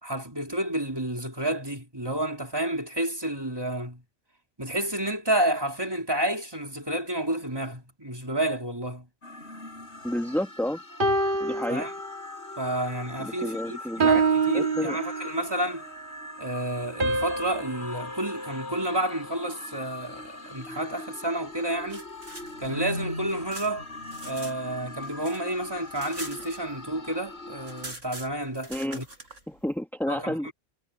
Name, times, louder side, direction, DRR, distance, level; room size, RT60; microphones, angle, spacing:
voice 1, 0.0-4.0 4.6-9.1 11.7-11.9 12.6-15.8 16.4-22.1 22.6-23.8 24.2-29.1 30.1-30.5, right 1 dB, 20° right, 2.9 m, -30 dB
sound 1, 9.2-27.9, left 2 dB, 60° left, 5.9 m, -41 dB
voice 2, 10.0-10.8 11.4-11.9 13.2-14.1 14.5-15.0 28.7-29.0 29.5-30.5, left 1 dB, ahead, 1.6 m, -30 dB
sound 2, 11.0-12.6 13.0-13.3 14.0-15.7 17.0-19.4, right 4 dB, 45° right, 1.8 m, -28 dB
sound 3, 21.6-24.6 24.9-27.0 27.3-27.4 27.6-29.4, right 2 dB, 85° right, 6.8 m, -43 dB
omnidirectional pair, 1.3 m